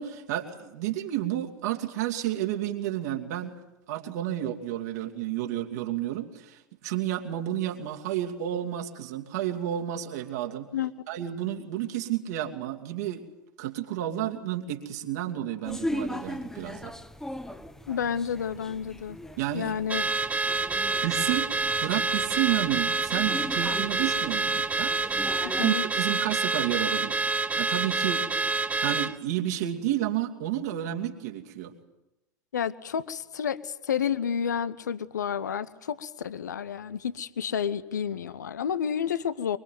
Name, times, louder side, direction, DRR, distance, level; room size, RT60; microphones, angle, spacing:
voice 1, 0.0-3.5 3.9-10.7 11.1-13.2 13.6-17.0 19.4-19.7 21.0-21.5 21.8-25.0 25.6-27.2 27.6-28.2 28.8-31.7, right 12 dB, 60° right, 2 dB, 2.8 m, -31 dB
sound 1, 15.6-25.7, left 1 dB, 5° left, 1.4 m, -39 dB
voice 2, 17.9-19.2 19.5-20.0 25.4-25.9 32.5-39.6, left 8 dB, 70° left, 16 dB, 1.0 m, -30 dB
Car / Alarm, 19.9-29.2, right 3 dB, 15° right, 1.0 m, -27 dB
24.5 x 23.5 x 9.3 m, 0.94 s
figure-of-eight pair, 80°, 10 cm